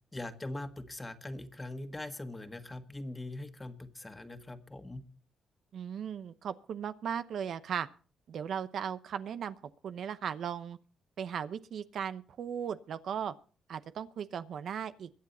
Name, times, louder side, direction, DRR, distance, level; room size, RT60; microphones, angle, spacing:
voice 1, 0.1-5.0, left 2 dB, 15° left, 7 dB, 1.7 m, -42 dB
voice 2, 5.7-7.9 8.3-9.6 9.8-10.8 11.2-13.3 13.7-15.1, right 8 dB, 65° right, 12 dB, 0.8 m, -37 dB
22.5 x 8.5 x 4.2 m, 0.39 s
cardioid pair, 90°, 0 cm